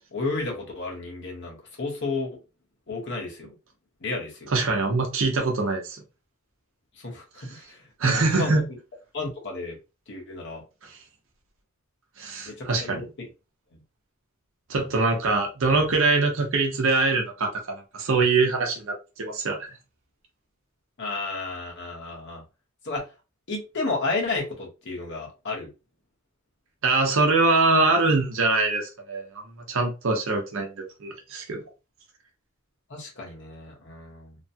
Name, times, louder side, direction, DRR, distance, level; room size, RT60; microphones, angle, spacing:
voice 1, 0.0-2.3 2.9-3.5 4.0-4.5 7.0-8.8 9.1-9.8 10.1-10.6 12.4-13.3 21.0-22.4 22.8-23.0 23.5-25.7 32.9-34.4, left 3 dB, 55° left, 1.1 m, -32 dB
voice 2, 4.5-6.0 8.0-8.6 10.9-11.0 12.2-13.1 14.7-19.6 26.8-29.2 29.7-31.6, right 3 dB, 65° right, 0.7 m, -23 dB
3.0 x 2.2 x 2.7 m
head